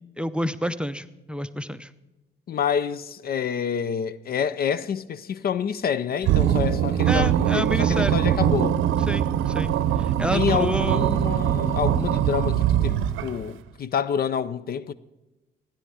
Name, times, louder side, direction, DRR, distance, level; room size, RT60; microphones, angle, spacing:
voice 1, 0.2-1.9 7.1-8.2 9.1-11.1, equal, 5° right, 0.5 m, -29 dB
voice 2, 2.5-8.8 10.3-14.9, left 7 dB, 50° left, 0.5 m, -28 dB
sound 1, 6.2-13.5, right 10 dB, 85° right, 0.6 m, -22 dB
15.5 x 10.5 x 4.9 m
cardioid pair, 90°, 20 cm